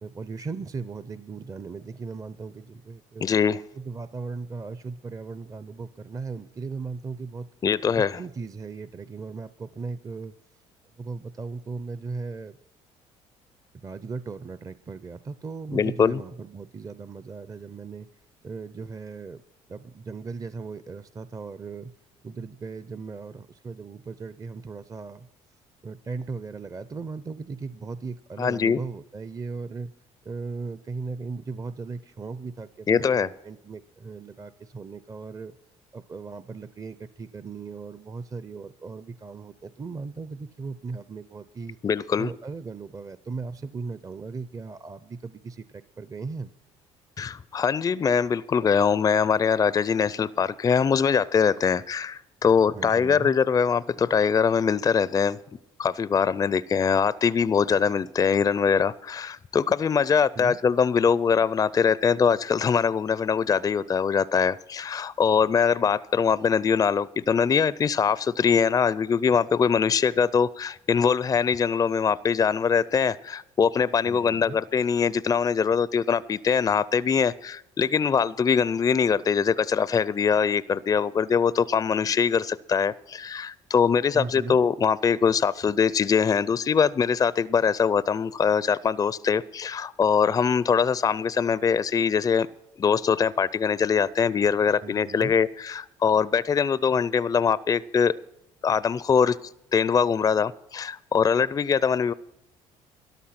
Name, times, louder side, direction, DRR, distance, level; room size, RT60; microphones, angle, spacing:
voice 1, 0.0-3.3 3.8-7.5 8.0-10.3 11.0-12.6 13.7-18.1 18.4-19.4 19.7-21.9 22.2-25.3 25.8-29.9 30.2-35.6 35.9-41.8 42.2-46.5 52.7-53.3 60.4-60.6 74.0-74.6 84.1-84.6 94.8-95.4, right 4 dB, 25° right, 14 dB, 0.5 m, -37 dB
voice 2, 3.2-3.6 7.6-8.2 15.7-16.2 28.4-28.8 32.9-33.3 41.8-42.3 47.2-55.4 55.8-92.5 92.8-98.1 98.6-102.1, left 6 dB, 30° left, 19 dB, 0.4 m, -23 dB
13.5 x 11.5 x 5.8 m, 0.82 s
supercardioid pair, 80°, 13 cm